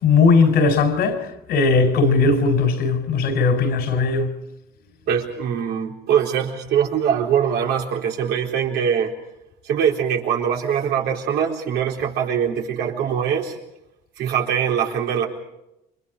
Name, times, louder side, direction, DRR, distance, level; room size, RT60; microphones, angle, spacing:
voice 1, 0.0-4.4, left 4 dB, 75° left, 3.8 m, -18 dB
voice 2, 5.1-9.1 9.6-13.6 14.2-15.2, right 8 dB, 80° right, 4.0 m, -22 dB
29.0 x 25.0 x 4.9 m
cardioid pair, 110°, 17 cm